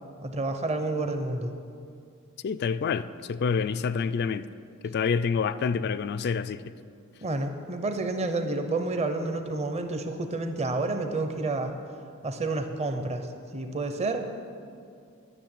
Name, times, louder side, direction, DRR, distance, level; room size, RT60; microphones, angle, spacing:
voice 1, 0.2-1.5 7.2-11.8 12.2-13.3 13.5-14.2, right 2 dB, 30° right, 6 dB, 0.7 m, -29 dB
voice 2, 2.4-4.4 4.8-6.6, left 5 dB, 50° left, 13 dB, 0.3 m, -27 dB
10.0 x 6.7 x 9.0 m, 2.3 s
head